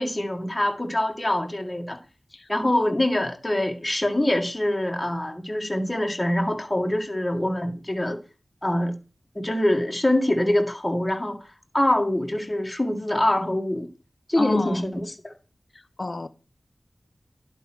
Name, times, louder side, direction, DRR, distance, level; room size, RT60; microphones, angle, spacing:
voice 1, 0.0-2.0 2.5-8.2 8.6-9.0 9.4-11.5 11.7-13.9 14.3-15.3, left 1 dB, 20° left, 1.9 m, -24 dB
voice 2, 14.4-14.8 16.0-16.3, left 3 dB, 55° left, 0.8 m, -27 dB
11.0 x 4.5 x 6.1 m
wide cardioid pair, 60°, 0 cm